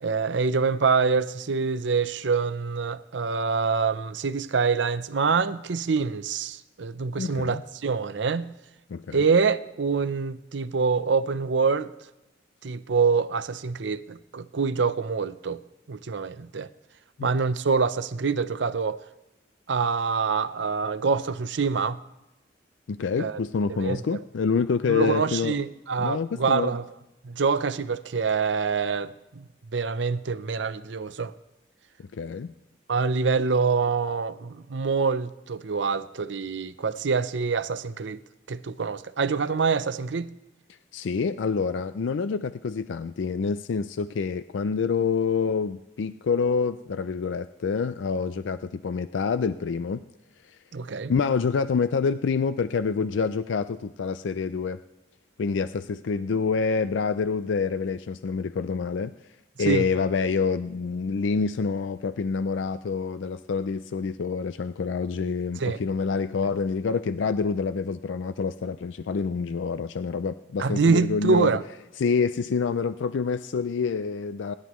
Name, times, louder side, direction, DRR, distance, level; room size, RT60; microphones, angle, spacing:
voice 1, 0.0-8.5 9.1-11.9 12.6-15.6 15.9-16.7 17.2-19.0 19.7-22.0 23.2-23.4 23.7-24.2 24.9-26.9 27.2-31.3 32.9-38.2 38.5-40.3 50.7-51.1 59.6-59.9 65.6-65.8 70.6-71.6, right 5 dB, 75° right, 0.6 m, -25 dB
voice 2, 7.2-7.6 8.9-9.2 17.2-17.3 22.9-25.6 26.0-26.7 32.1-32.5 40.9-50.0 50.5-50.6 51.1-54.8 55.4-59.1 59.6-71.5 72.0-74.5, left 5 dB, 85° left, 0.4 m, -27 dB
26.5 x 11.5 x 3.1 m
head